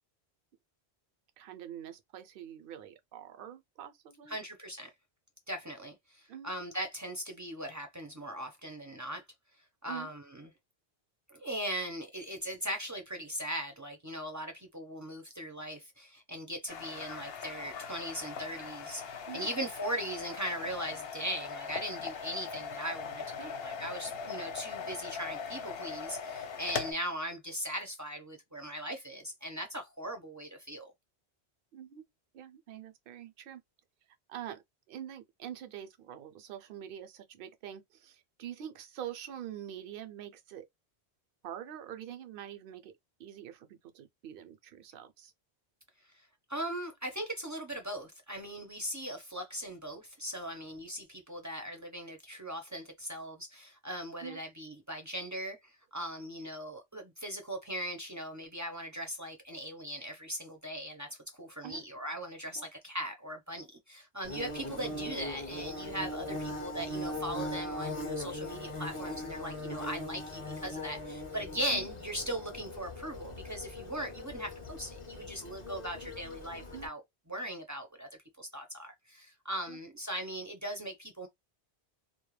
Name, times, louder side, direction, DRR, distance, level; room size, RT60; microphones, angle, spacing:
voice 1, 1.4-4.4 6.3-6.5 9.9-10.1 19.3-19.5 23.4-23.5 31.7-32.1 32.3-33.6 34.3-34.6 34.9-40.7 41.4-42.9 43.2-45.3 54.2-54.4 61.6-61.8 62.6-62.7 71.7-71.9 76.7-76.9 79.7-79.8, right 10 dB, 65° right, 0.7 m, -45 dB
voice 2, 4.3-4.9 5.5-9.2 9.8-10.5 11.3-30.9 46.5-77.0 77.3-78.1 78.4-81.3, equal, 25° right, 0.4 m, -39 dB
sound 1, 16.7-26.9, left 6 dB, 70° left, 0.8 m, -40 dB
Bird / Buzz, 64.2-76.9, left 1 dB, 35° left, 0.6 m, -40 dB
2.3 x 2.1 x 3.1 m
omnidirectional pair, 1.1 m